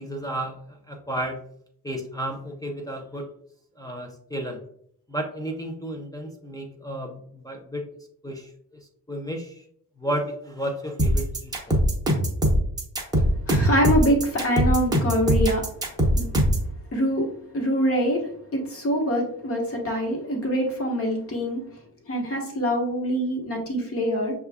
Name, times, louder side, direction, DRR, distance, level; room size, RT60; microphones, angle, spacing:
voice 1, 0.0-1.4 1.8-3.3 3.8-4.6 5.1-7.9 8.2-8.8 9.1-9.6 10.0-11.8, right 1 dB, 10° left, -1 dB, 0.4 m, -32 dB
sound 1, 11.0-16.7, equal, 10° right, 0.9 m, -21 dB
voice 2, 13.1-15.6 16.2-16.3 16.9-17.3 17.5-18.2 18.5-21.6 22.1-24.3, equal, 35° left, 1 dB, 1.2 m, -24 dB
6.6 x 2.4 x 3.4 m, 0.65 s
wide cardioid pair, 175°, 40 cm